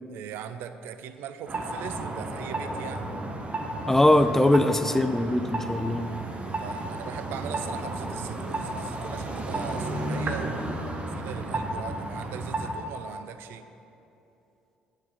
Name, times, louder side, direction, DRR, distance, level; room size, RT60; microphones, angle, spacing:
voice 1, 0.1-3.1 6.6-13.7, right 9 dB, 60° right, 11 dB, 0.4 m, -40 dB
sound 1, 1.5-12.8, right 2 dB, 30° right, 0.8 m, -33 dB
voice 2, 3.9-6.1, left 1 dB, 10° left, 10 dB, 0.4 m, -21 dB
9.4 x 3.9 x 5.8 m, 2.9 s
figure-of-eight pair, 50°, 4 cm